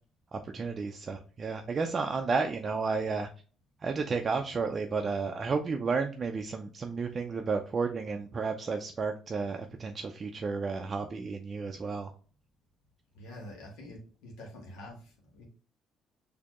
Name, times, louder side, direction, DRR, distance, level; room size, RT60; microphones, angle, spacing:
voice 1, 0.3-3.3 3.8-12.1, right 4 dB, 35° right, 4 dB, 0.4 m, -32 dB
voice 2, 13.1-15.5, left 1 dB, 90° left, -1 dB, 1.2 m, -46 dB
4.2 x 2.7 x 2.9 m, 0.39 s
cardioid pair, 110°, 0 cm